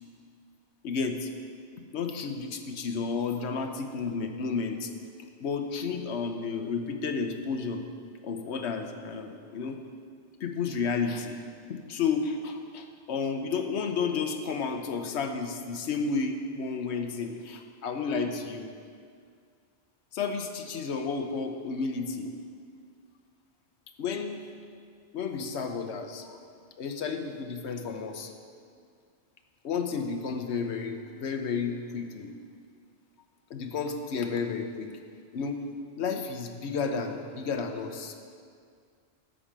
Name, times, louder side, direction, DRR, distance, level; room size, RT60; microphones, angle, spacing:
voice 1, 0.8-1.3 1.9-4.9 5.4-7.8 8.2-9.8 10.4-11.4 11.7-18.7 20.1-22.3 24.0-24.4 25.1-26.4 26.8-28.3 29.6-32.3 33.5-34.9 35.3-35.6 36.0-38.2, left 5 dB, 75° left, 6 dB, 1.1 m, -32 dB
10.5 x 5.1 x 7.3 m, 2.1 s
omnidirectional pair, 1.2 m